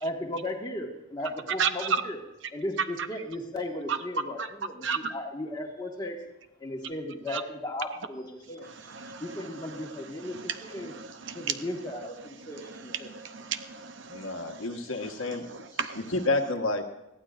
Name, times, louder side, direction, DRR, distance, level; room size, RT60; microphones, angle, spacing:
voice 1, 0.0-2.2 2.5-6.2 6.6-8.7 9.2-10.9 11.3-13.1, left 1 dB, 20° left, 0 dB, 1.6 m, -36 dB
voice 2, 4.8-5.1 7.3-7.4 8.9-9.2 10.3-10.4 10.8-11.5 12.7-14.6 15.8-16.0, right 7 dB, 55° right, 9 dB, 0.7 m, -33 dB
voice 3, 14.1-15.5 15.9-16.8, left 2 dB, 70° left, 3 dB, 1.3 m, -29 dB
21.0 x 15.0 x 2.5 m, 0.92 s
head